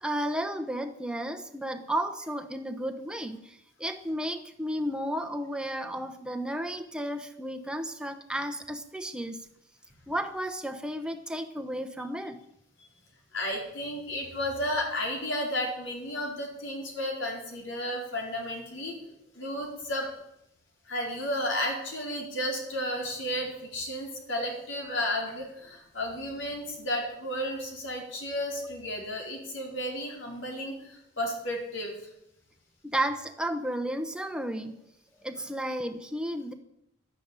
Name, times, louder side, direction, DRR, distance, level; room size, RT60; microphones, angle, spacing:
voice 1, 0.0-9.5 10.1-12.4 32.8-34.8 35.2-36.5, right 1 dB, 5° right, 6 dB, 1.0 m, -33 dB
voice 2, 13.3-19.0 19.3-20.1 20.9-32.0, left 1 dB, 75° left, 0 dB, 4.5 m, -33 dB
12.0 x 10.0 x 8.9 m, 0.81 s
head